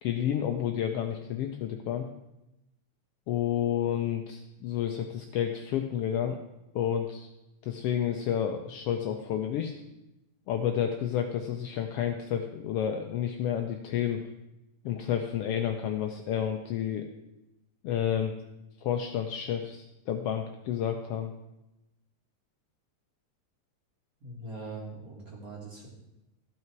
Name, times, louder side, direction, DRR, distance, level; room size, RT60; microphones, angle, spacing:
voice 1, 0.0-2.1 3.3-6.4 6.7-7.3 7.6-9.7 10.5-14.2 14.8-17.1 17.8-18.4 18.8-21.3, left 9 dB, 90° left, 5 dB, 1.3 m, -30 dB
voice 2, 24.2-25.9, right 3 dB, 30° right, -3 dB, 2.3 m, -42 dB
14.5 x 5.7 x 4.6 m, 0.94 s
omnidirectional pair, 3.4 m